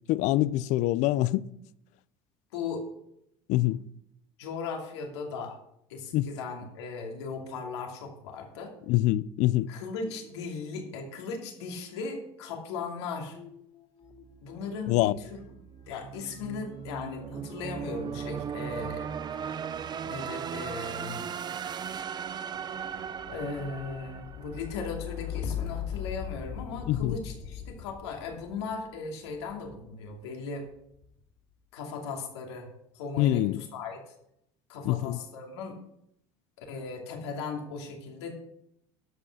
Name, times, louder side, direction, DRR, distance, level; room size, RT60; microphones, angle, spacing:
voice 1, 0.1-1.4 3.5-3.8 6.1-6.3 8.9-9.7 14.9-15.1 26.9-27.2 33.2-33.6 34.8-35.2, left 16 dB, 60° left, 0.5 m, -25 dB
voice 2, 2.5-2.8 4.4-5.6 5.9-8.7 9.7-13.4 14.4-15.4 15.9-19.1 20.0-21.3 23.3-30.7 31.7-32.7 32.9-34.1 34.7-35.8 36.6-38.3, left 4 dB, 90° left, 2.6 m, -37 dB
sound 1, 13.3-14.7 14.9-30.0 30.7-31.3, left 8 dB, 45° left, 2.7 m, -42 dB
sound 2, 14.1-25.1, right 7 dB, 30° right, 0.6 m, -38 dB
12.5 x 6.1 x 6.5 m
supercardioid pair, 100°, 14 cm